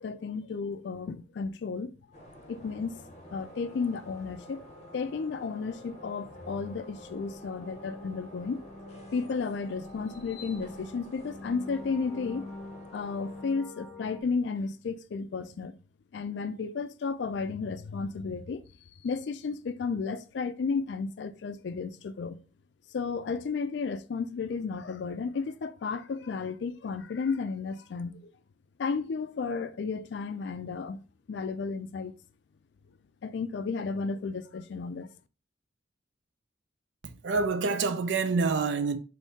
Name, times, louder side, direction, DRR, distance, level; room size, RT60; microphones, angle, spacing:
voice 1, 0.0-1.9 2.5-3.0 3.3-4.6 4.9-8.7 9.1-12.5 12.9-15.8 16.1-18.6 19.0-22.4 22.9-28.1 28.8-31.0 31.3-32.1 33.2-35.1, left 5 dB, 65° left, 0.4 m, -33 dB
sound 1, 2.1-13.5, left 1 dB, 35° left, 0.8 m, -50 dB
sound 2, 3.2-14.2, left 1 dB, 5° left, 1.0 m, -48 dB
voice 2, 37.0-39.0, right 4 dB, 75° right, 0.5 m, -27 dB
3.5 x 2.7 x 4.0 m
head